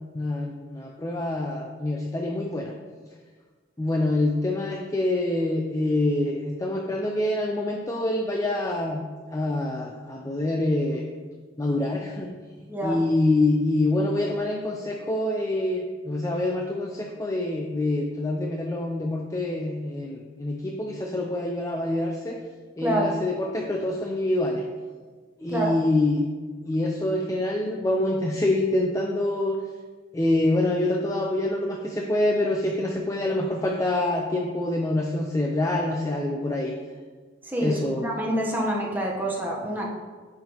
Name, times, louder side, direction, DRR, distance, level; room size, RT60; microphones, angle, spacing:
voice 1, 0.1-2.7 3.8-9.0 9.3-11.0 11.6-12.4 12.8-22.4 22.8-24.6 25.4-26.2 26.6-29.6 30.1-36.7 37.6-38.1, left 1 dB, 15° left, 1 dB, 0.4 m, -26 dB
voice 2, 12.7-13.0 22.8-23.1 25.5-25.7 37.4-39.9, equal, 10° right, -2 dB, 1.0 m, -27 dB
9.2 x 5.7 x 3.0 m, 1.5 s
head